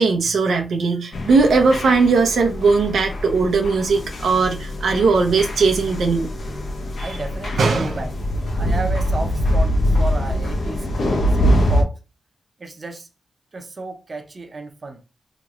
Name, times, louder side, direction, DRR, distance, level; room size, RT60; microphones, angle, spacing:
voice 1, 0.0-6.3 7.0-7.1 7.6-8.0, right 4 dB, 85° right, 0.6 m, -18 dB
sound 1, 1.1-11.8, equal, 75° left, 0.9 m, -23 dB
voice 2, 7.0-8.1 8.6-10.9 11.3-12.0 12.6-13.1 13.5-15.0, right 3 dB, 45° right, 0.7 m, -32 dB
3.1 x 3.0 x 2.4 m
cardioid pair, 80°, 0 cm